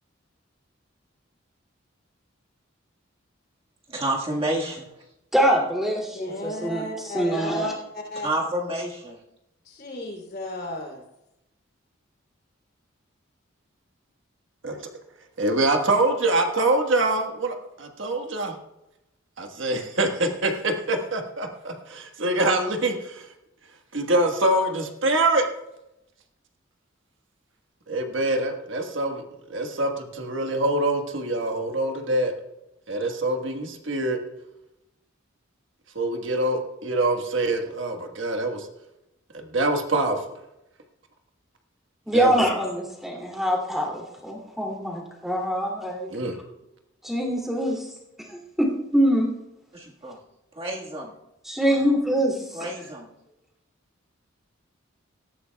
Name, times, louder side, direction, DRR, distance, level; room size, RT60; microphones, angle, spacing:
voice 1, 3.9-4.9 8.2-9.2 49.7-50.2 50.5-51.1 52.5-53.1, right 1 dB, 30° right, 1.6 m, -29 dB
voice 2, 5.3-7.7 42.1-46.1 47.0-47.9 48.3-49.3 51.4-52.7, equal, ahead, 2.6 m, -24 dB
voice 3, 6.1-8.3 9.6-11.0, left 1 dB, 45° left, 3.1 m, -34 dB
voice 4, 15.4-18.5 19.4-23.3 23.9-25.5 27.9-29.2 29.5-32.3 32.9-34.2 35.9-38.7 39.3-40.2 42.1-42.3 46.1-46.3, right 2 dB, 70° right, 1.4 m, -25 dB
18.0 x 13.5 x 2.3 m
head